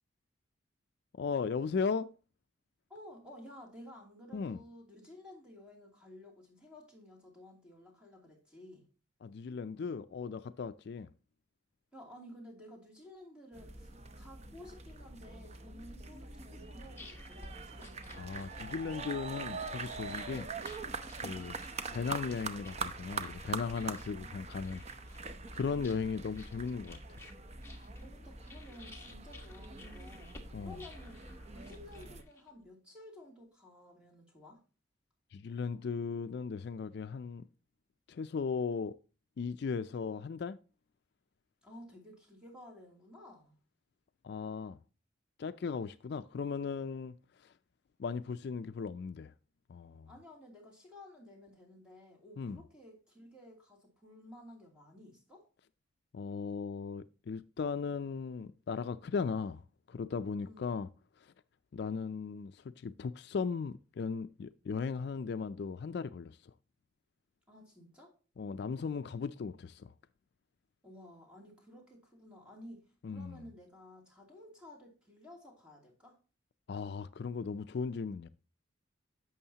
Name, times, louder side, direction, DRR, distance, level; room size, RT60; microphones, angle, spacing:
voice 1, 1.1-2.1 4.3-4.6 9.2-11.1 18.2-20.5 21.2-21.5 21.9-27.2 30.5-30.8 35.3-37.4 38.1-39.0 39.4-40.6 44.2-44.8 45.4-47.5 48.0-49.3 49.7-50.1 52.4-52.6 56.1-59.6 59.9-60.9 61.2-61.3 61.7-66.5 68.4-69.9 73.0-73.5 76.7-78.3, left 5 dB, 55° left, 0.3 m, -37 dB
voice 2, 2.9-8.8 11.9-17.9 28.0-31.2 31.5-34.6 41.6-43.6 50.1-55.5 60.4-60.7 67.5-68.1 70.8-76.2, left 1 dB, 5° right, 2.7 m, -53 dB
sound 1, 13.5-32.2, right 4 dB, 35° right, 0.7 m, -43 dB
sound 2, 16.5-32.6, left 2 dB, 15° left, 1.4 m, -56 dB
11.0 x 7.1 x 2.8 m
head